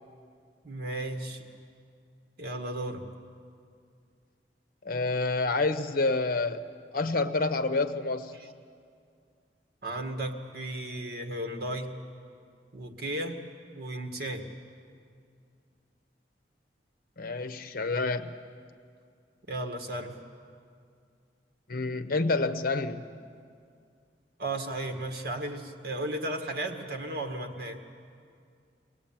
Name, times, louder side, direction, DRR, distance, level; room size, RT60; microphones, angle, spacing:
voice 1, 0.6-1.4 2.4-3.1 9.8-12.0 12.7-13.4 13.7-14.5 19.5-20.2 24.4-27.8, right 1 dB, 60° right, 4 dB, 2.0 m, -34 dB
voice 2, 4.8-6.6 6.9-8.3 17.2-18.3 21.7-23.0, left 3 dB, 55° left, 10 dB, 1.0 m, -28 dB
23.5 x 18.0 x 8.9 m, 2.3 s
head